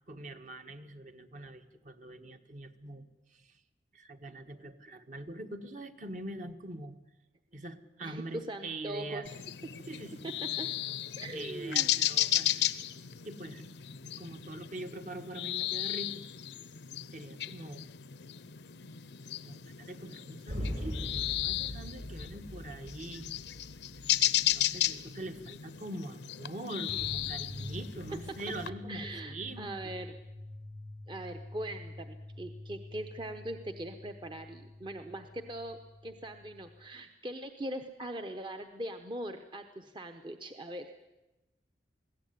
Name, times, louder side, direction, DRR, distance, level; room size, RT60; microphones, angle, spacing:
voice 1, 0.1-3.6 3.9-7.0 7.5-9.3 9.8-10.2 11.3-12.6 13.2-16.1 17.1-18.0 19.4-23.3 24.4-29.9, right 1 dB, 45° right, 7 dB, 1.5 m, -43 dB
voice 2, 8.0-9.4 10.2-10.7 11.2-11.9 28.9-30.2 31.1-35.8 36.0-41.0, right 1 dB, 25° right, 6 dB, 1.0 m, -41 dB
sound 1, 9.3-28.7, left 13 dB, 75° left, 0.7 m, -35 dB
sound 2, 20.5-25.6 26.9-36.9, left 1 dB, 65° right, 7.9 m, -44 dB
21.5 x 16.0 x 9.5 m, 1.0 s
head